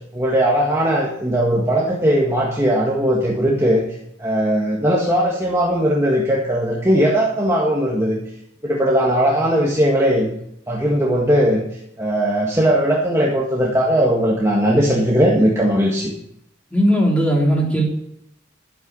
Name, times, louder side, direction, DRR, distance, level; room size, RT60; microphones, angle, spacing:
voice 1, 0.1-3.9 4.2-8.2 8.6-10.3 10.7-16.1, equal, 15° right, -3 dB, 1.8 m, -18 dB
voice 2, 16.7-17.8, equal, 5° left, -3 dB, 3.6 m, -17 dB
12.0 x 9.4 x 6.3 m, 0.76 s
head